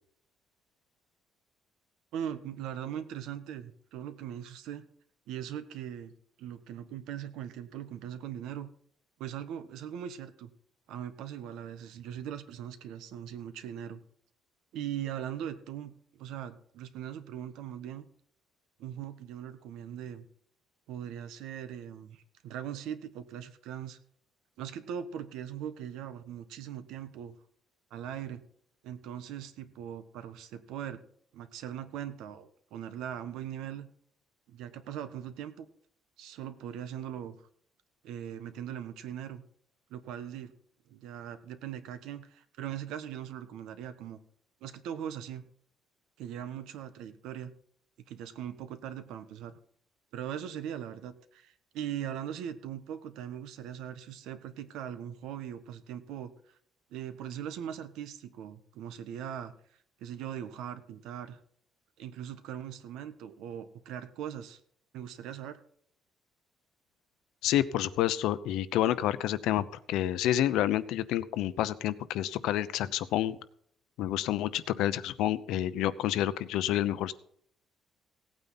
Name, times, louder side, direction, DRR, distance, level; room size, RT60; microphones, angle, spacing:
voice 1, 2.1-4.8 5.3-8.7 9.2-10.5 10.9-14.0 14.7-18.0 18.8-20.3 20.9-24.0 24.6-27.4 27.9-28.4 28.8-31.0 31.3-33.9 34.5-35.7 36.2-37.4 38.0-39.4 39.9-40.5 40.9-44.2 44.6-45.4 46.2-47.5 48.1-49.5 50.1-56.3 56.9-59.5 60.0-61.4 62.0-64.6 64.9-65.6, right 10 dB, 80° right, 10 dB, 1.3 m, -40 dB
voice 2, 67.4-73.4 74.0-77.1, left 12 dB, 80° left, 14 dB, 0.8 m, -29 dB
17.5 x 9.0 x 4.1 m, 0.62 s
cardioid pair, 180°, 0 cm